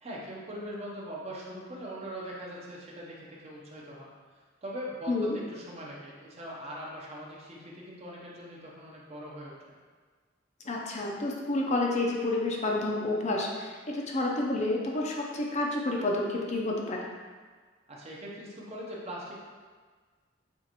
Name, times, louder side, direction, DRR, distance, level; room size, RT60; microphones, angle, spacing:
voice 1, 0.0-4.1 4.6-9.5 17.9-19.3, equal, 35° right, -4 dB, 0.8 m, -41 dB
voice 2, 10.6-17.0, left 2 dB, 40° left, -1 dB, 0.6 m, -29 dB
7.0 x 2.5 x 2.9 m, 1.5 s
head